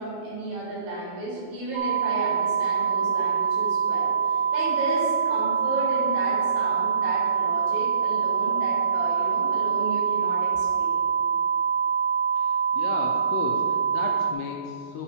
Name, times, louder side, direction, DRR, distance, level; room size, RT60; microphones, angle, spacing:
voice 1, 0.0-11.0, right 1 dB, 55° right, -6 dB, 3.7 m, -33 dB
sound 1, 1.7-14.3, right 7 dB, 85° right, 2.2 m, -24 dB
voice 2, 12.4-15.0, left 5 dB, 85° left, 1 dB, 2.5 m, -35 dB
8.8 x 5.4 x 4.9 m, 2.3 s
omnidirectional pair, 5.1 m